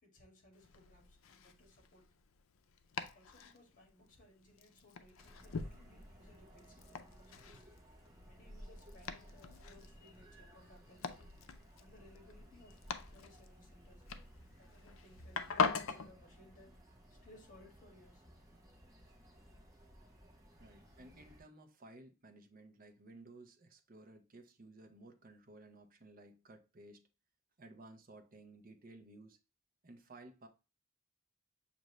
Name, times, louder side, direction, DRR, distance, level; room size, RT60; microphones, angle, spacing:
voice 1, 0.0-2.1 3.1-7.6 8.3-11.2 11.8-14.1 14.6-16.8 17.2-18.2, left 1 dB, 40° left, 1.6 m, -62 dB
Domestic sounds home sounds, 0.5-16.1, left 5 dB, 85° left, 0.5 m, -43 dB
sound 1, 5.2-21.4, equal, 15° right, 1.0 m, -59 dB
voice 2, 7.5-8.4 8.9-9.0 9.7-9.8 10.2-10.3 11.6-11.7 20.6-27.1 27.6-29.4 29.8-30.5, right 2 dB, 45° right, 0.7 m, -57 dB
6.5 x 2.6 x 3.0 m
head